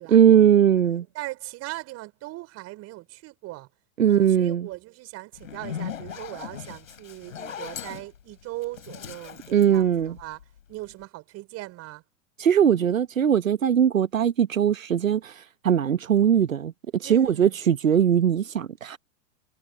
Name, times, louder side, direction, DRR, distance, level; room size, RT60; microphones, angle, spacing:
voice 1, 0.1-1.0 4.0-4.7 9.5-10.2 12.4-19.0, right 9 dB, 85° right, 1.0 m, -20 dB
voice 2, 1.2-3.7 4.1-10.4 10.7-12.0 17.0-17.6, right 19 dB, 40° right, 5.3 m, -39 dB
Zipper (clothing), 5.3-10.6, left 8 dB, 75° left, 4.7 m, -38 dB
hypercardioid pair, 100°, 39 cm